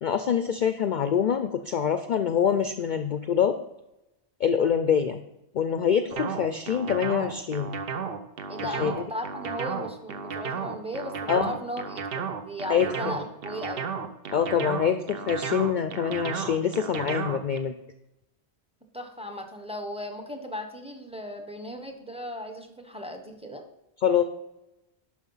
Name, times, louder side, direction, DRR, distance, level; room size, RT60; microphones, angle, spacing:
voice 1, 0.0-3.6 4.4-5.2 5.5-7.8 8.6-8.9 11.3-11.6 12.7-13.2 14.3-17.7 24.0-24.2, left 8 dB, 55° left, 9 dB, 0.6 m, -25 dB
sound 1, 6.1-17.6, right 6 dB, 60° right, 1.0 m, -33 dB
voice 2, 8.5-13.9 18.9-23.6, equal, 5° right, 5 dB, 1.0 m, -37 dB
11.0 x 5.0 x 5.6 m, 0.91 s
omnidirectional pair, 1.1 m